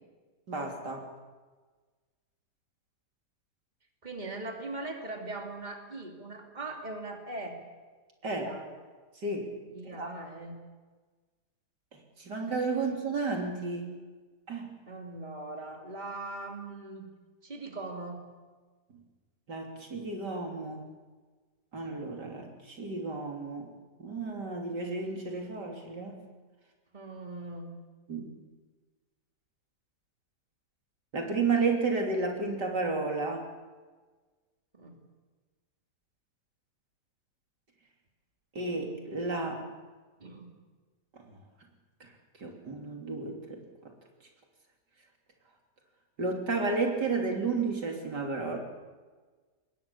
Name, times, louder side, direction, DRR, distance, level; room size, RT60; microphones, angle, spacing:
voice 1, 0.5-1.1 8.2-8.5 9.2-9.5 9.9-10.1 11.9-13.9 14.5-14.7 19.5-20.9 21.7-23.7 24.0-26.2 28.1-28.2 31.1-33.5 38.6-39.6 42.0-42.1 42.4-43.6 46.2-48.6, right 3 dB, 80° right, 1 dB, 3.9 m, -32 dB
voice 2, 4.0-7.6 8.2-8.8 9.7-10.6 14.9-17.1 17.4-18.2 26.9-27.8 34.7-35.0 40.2-40.5, right 2 dB, 25° right, 2 dB, 3.0 m, -40 dB
26.5 x 21.5 x 7.2 m, 1.4 s
omnidirectional pair, 1.8 m